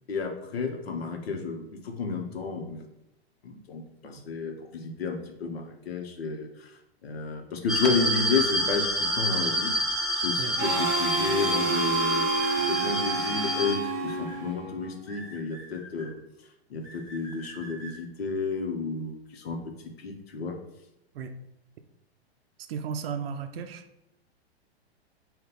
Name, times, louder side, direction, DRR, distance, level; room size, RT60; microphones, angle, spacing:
voice 1, 0.1-2.8 3.4-6.7 7.0-9.8 10.2-12.2 12.7-16.2 16.7-19.6 20.0-20.6, left 4 dB, 65° left, 4 dB, 0.8 m, -31 dB
sound 1, 7.7-13.7, equal, ahead, 0.9 m, -28 dB
Harmonica, 10.6-15.0, right 4 dB, 30° right, 0.7 m, -29 dB
sound 2, 12.4-14.4 15.1-16.1 16.8-17.9, equal, 25° left, 1.3 m, -45 dB
voice 2, 22.7-23.8, right 6 dB, 65° right, 8 dB, 0.5 m, -34 dB
5.3 x 2.3 x 3.8 m, 0.83 s
figure-of-eight pair, 100°, 32 cm